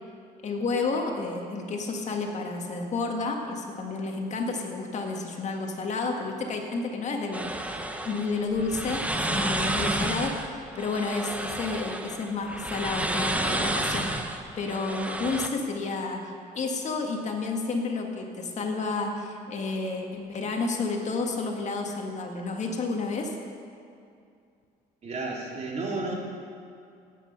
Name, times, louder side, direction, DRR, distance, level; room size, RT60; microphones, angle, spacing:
voice 1, 0.4-23.3, left 3 dB, 45° left, 2 dB, 1.8 m, -31 dB
sound 1, 7.3-15.5, right 1 dB, 10° right, 0.9 m, -31 dB
voice 2, 25.0-26.1, right 3 dB, 40° right, -2 dB, 3.0 m, -32 dB
17.5 x 8.8 x 5.8 m, 2.4 s
cardioid pair, 110°, 17 cm